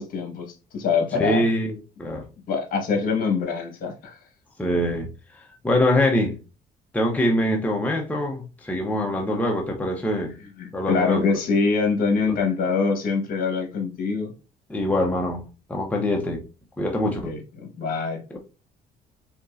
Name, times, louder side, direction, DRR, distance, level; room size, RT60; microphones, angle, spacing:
voice 1, 0.0-1.4 2.5-4.2 10.6-14.3 17.2-18.2, left 4 dB, 55° left, 1.6 m, -24 dB
voice 2, 1.2-2.3 4.6-6.4 6.9-10.3 10.7-11.2 12.3-12.4 14.7-15.4 15.7-16.4 16.8-17.3 18.3-18.4, left 1 dB, 10° left, 0.8 m, -24 dB
5.1 x 3.0 x 2.6 m
cardioid pair, 110°, 17 cm